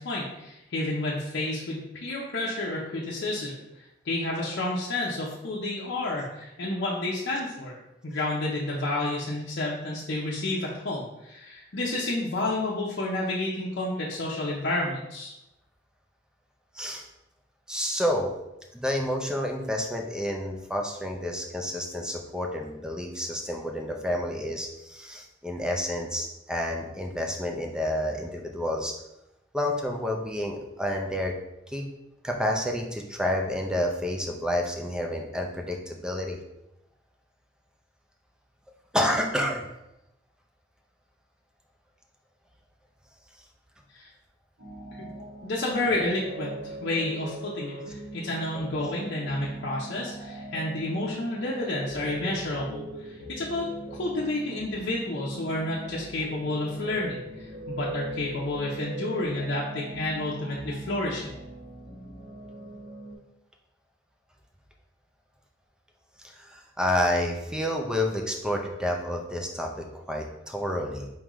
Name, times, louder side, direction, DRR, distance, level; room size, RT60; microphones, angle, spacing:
voice 1, 0.0-7.8 8.0-15.3 43.9-44.1 45.0-45.1 45.4-61.3, left 2 dB, 60° left, -5 dB, 0.7 m, -30 dB
voice 2, 16.7-17.1 17.7-18.3 18.7-28.9 29.5-31.3 31.7-31.9 32.2-36.4 38.9-39.7 66.2-71.1, left 1 dB, 5° right, 1 dB, 0.5 m, -29 dB
sound 1, 44.6-63.2, right 2 dB, 55° right, 1.4 m, -41 dB
4.5 x 3.7 x 3.0 m, 0.90 s
head